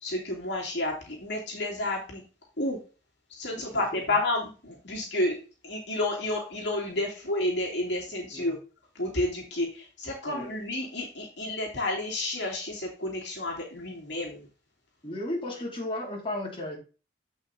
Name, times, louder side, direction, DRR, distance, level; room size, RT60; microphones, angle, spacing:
voice 1, 0.0-2.2 2.6-2.8 3.3-8.6 8.9-14.5, left 1 dB, 65° left, -2 dB, 2.6 m, -31 dB
voice 2, 3.5-4.0 8.3-8.5 10.3-10.5 15.0-16.8, left 1 dB, 30° left, -5 dB, 2.8 m, -35 dB
7.6 x 5.6 x 4.0 m, 0.34 s
head